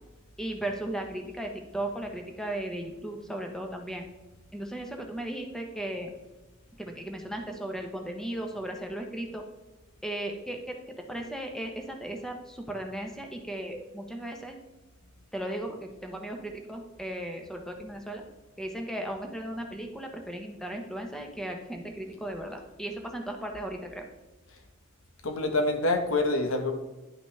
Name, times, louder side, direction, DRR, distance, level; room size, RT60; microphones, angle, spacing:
voice 1, 0.4-4.0 4.5-6.1 6.8-9.4 10.0-10.8 11.1-14.6 15.3-18.2 18.6-24.1, right 1 dB, 5° left, 3 dB, 1.1 m, -36 dB
voice 2, 25.2-26.7, left 2 dB, 75° left, 5 dB, 1.3 m, -26 dB
10.5 x 5.9 x 3.4 m, 1.1 s
head